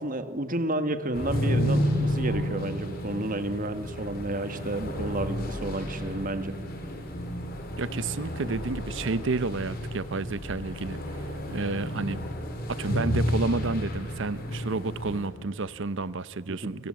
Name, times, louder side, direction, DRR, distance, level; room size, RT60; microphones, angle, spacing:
voice 1, 0.0-6.5 16.5-16.8, right 1 dB, 40° right, 1.4 m, -31 dB
sound 1, 1.1-15.3, equal, 45° left, 3.7 m, -31 dB
voice 2, 7.8-11.0 11.5-12.2 12.7-16.9, right 3 dB, 60° right, 0.7 m, -30 dB
28.5 x 27.0 x 7.8 m
head